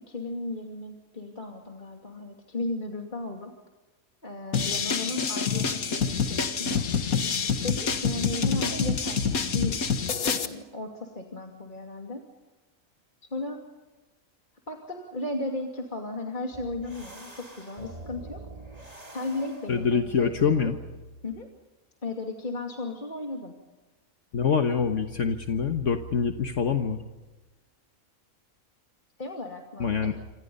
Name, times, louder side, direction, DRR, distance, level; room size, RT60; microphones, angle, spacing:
voice 1, 0.0-3.5 4.2-6.9 7.6-9.8 10.4-12.3 13.3-13.6 14.7-18.4 19.1-20.7 21.2-21.5 22.0-23.5 29.2-30.1, left 2 dB, 35° left, 2 dB, 2.7 m, -35 dB
sound 1, 4.5-10.5, left 6 dB, 85° left, 2.0 m, -27 dB
sound 2, 16.5-20.0, right 2 dB, 25° right, 2.9 m, -45 dB
voice 2, 19.7-20.8 24.3-27.0 29.8-30.2, left 6 dB, 60° left, 6 dB, 1.6 m, -25 dB
28.0 x 27.0 x 5.4 m, 1.2 s
omnidirectional pair, 1.5 m